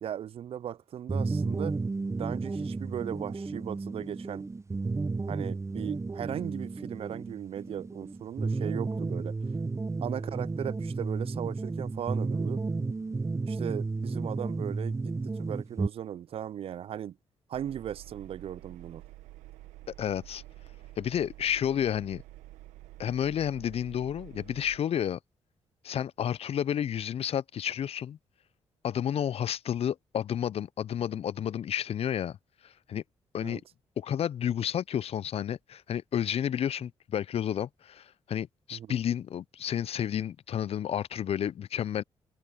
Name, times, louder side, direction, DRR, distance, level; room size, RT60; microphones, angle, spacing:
voice 1, 0.0-1.8 2.2-4.5 5.3-9.4 10.0-12.6 13.4-17.2 17.5-19.0 33.4-33.6 38.7-39.0, right 10 dB, 55° right, 0.4 m, -37 dB
sound 1, 1.1-15.9, right 3 dB, 25° right, 0.8 m, -33 dB
Engine, 17.5-24.8, right 16 dB, 85° right, 1.3 m, -49 dB
voice 2, 20.0-20.4 21.0-22.2 23.0-25.2 25.8-28.2 28.8-32.4 32.6-33.0 33.3-33.6 34.0-42.0, left 9 dB, 60° left, 0.5 m, -31 dB
hypercardioid pair, 45°, 12 cm